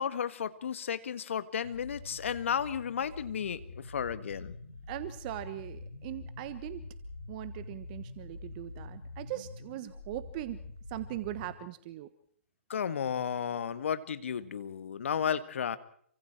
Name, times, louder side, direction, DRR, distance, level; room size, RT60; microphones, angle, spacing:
voice 1, 0.0-4.6 12.7-15.8, left 8 dB, 65° left, 13 dB, 1.7 m, -33 dB
sound 1, 1.6-11.5, left 2 dB, 90° left, 4.1 m, -46 dB
voice 2, 4.9-6.8 7.3-10.6 10.9-12.1, right 15 dB, 40° right, 13 dB, 1.2 m, -40 dB
28.0 x 25.0 x 4.5 m, 0.64 s
figure-of-eight pair, 125°, 7 cm